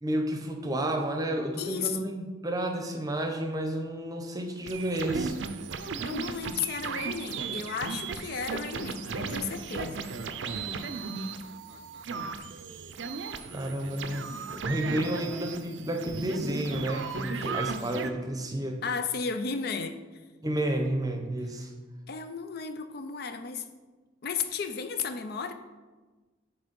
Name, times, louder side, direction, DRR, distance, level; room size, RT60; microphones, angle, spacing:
voice 1, 0.0-5.4 13.5-18.8 20.4-21.7, right 1 dB, 20° right, 4 dB, 0.7 m, -31 dB
voice 2, 1.6-2.1 6.0-10.1 17.3-17.5 18.8-20.0 22.1-23.7 24.2-25.5, left 5 dB, 55° left, 9 dB, 0.4 m, -34 dB
sound 1, 4.7-18.1, right 5 dB, 80° right, 0.5 m, -36 dB
6.4 x 4.4 x 5.2 m, 1.3 s
head